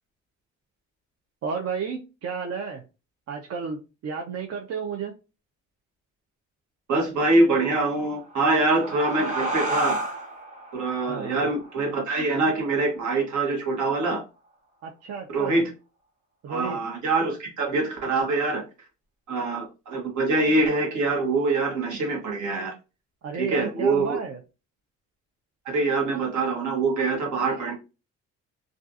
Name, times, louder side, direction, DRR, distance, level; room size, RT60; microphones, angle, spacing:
voice 1, 1.4-2.8 3.3-5.1 11.1-11.5 14.8-15.6 16.4-16.8 23.2-24.4, right 6 dB, 55° right, 1 dB, 0.5 m, -32 dB
voice 2, 6.9-10.0 10.7-14.2 15.3-15.7 16.5-18.6 19.3-22.7 23.3-24.2 25.6-27.7, right 3 dB, 70° right, 1 dB, 1.2 m, -24 dB
sound 1, 8.1-13.3, right 1 dB, 25° right, 0.8 m, -33 dB
2.6 x 2.4 x 2.3 m, 0.30 s
cardioid pair, 90°, 30 cm